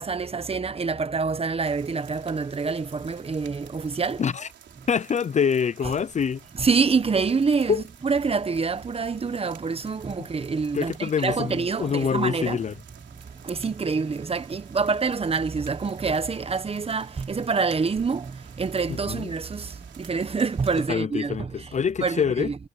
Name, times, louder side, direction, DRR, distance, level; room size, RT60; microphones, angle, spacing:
voice 1, 0.0-4.2 6.5-12.6 13.4-21.7 22.0-22.5, right 5 dB, 30° right, 1.4 m, -26 dB
sound 1, 1.6-20.9, right 9 dB, 65° right, 3.9 m, -51 dB
voice 2, 4.9-6.4 7.7-7.8 10.2-10.3 10.7-12.7 18.9-19.3 20.9-22.5, left 7 dB, 35° left, 0.6 m, -25 dB
cardioid pair, 90°, 20 cm